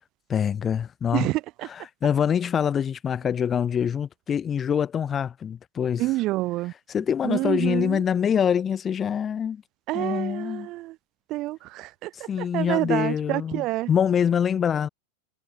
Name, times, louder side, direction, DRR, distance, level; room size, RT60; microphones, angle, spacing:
voice 1, 0.3-1.3 1.7-6.1 6.9-9.6 9.9-10.7 12.1-14.9, left 8 dB, 25° left, 0.6 m, -25 dB
voice 2, 1.1-1.7 6.0-6.7 7.2-8.0 9.9-11.0 11.3-13.9, right 18 dB, 40° right, 0.4 m, -28 dB
figure-of-eight pair, 90°, 0 cm